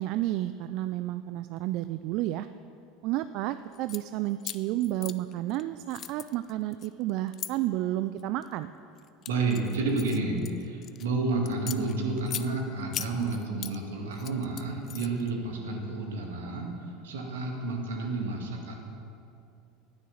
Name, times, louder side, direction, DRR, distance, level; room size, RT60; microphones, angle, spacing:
voice 1, 0.0-2.5 3.0-8.7, right 14 dB, 55° right, 12 dB, 0.3 m, -31 dB
sound 1, 3.7-4.0 4.4-5.6 5.9-7.5 8.2-8.5 9.0-11.1 11.5-12.5 12.9-13.8 14.1-15.3, left 11 dB, 45° left, 0.5 m, -39 dB
voice 2, 9.3-16.7 17.0-18.8, right 3 dB, 75° right, 1 dB, 1.9 m, -30 dB
9.9 x 9.7 x 7.1 m, 2.6 s
hypercardioid pair, 80°, 0 cm